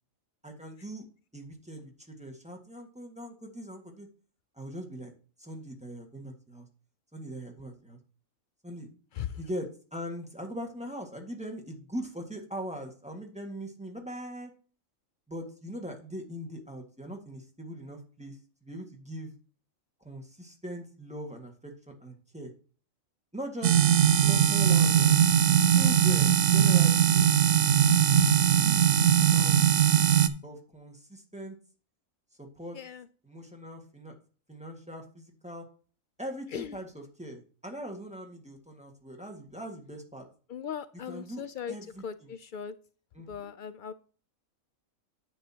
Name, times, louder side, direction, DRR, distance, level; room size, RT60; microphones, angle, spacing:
voice 1, 0.4-1.1 1.3-4.1 4.5-5.1 5.4-6.7 7.1-8.0 8.6-8.9 9.4-14.5 15.3-19.3 20.0-22.5 23.3-23.8 24.1-25.2 25.7-27.3 28.3-29.9 30.4-31.6 32.4-32.8 33.2-34.1 34.5-35.6 36.2-40.3 41.1-42.3 43.1-43.5, equal, 5° right, 2 dB, 1.6 m, -41 dB
sound 1, 23.6-30.3, right 9 dB, 65° right, 1.0 m, -21 dB
voice 2, 40.5-41.8 42.0-42.7 43.3-43.9, left 8 dB, 90° left, 13 dB, 0.4 m, -38 dB
10.0 x 7.9 x 2.8 m, 0.40 s
omnidirectional pair, 1.4 m